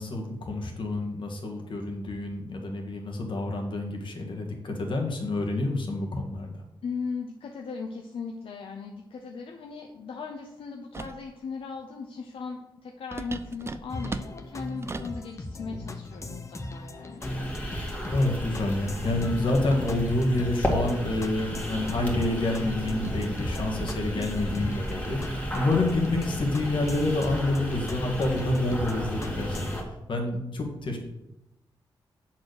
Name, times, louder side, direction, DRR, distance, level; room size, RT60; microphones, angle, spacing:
voice 1, 0.0-6.5 18.1-31.0, left 2 dB, 60° left, 1 dB, 1.8 m, -28 dB
voice 2, 6.8-17.2, left 5 dB, 80° left, 1 dB, 0.8 m, -38 dB
sound 1, 10.9-11.3 13.1-15.2, right 3 dB, 30° right, 0.5 m, -37 dB
sound 2, 13.9-29.8, left 1 dB, 35° left, 0.9 m, -37 dB
sound 3, 17.2-29.8, equal, 15° left, 2.3 m, -34 dB
7.4 x 4.5 x 6.6 m, 0.92 s
cardioid pair, 80°, 9 cm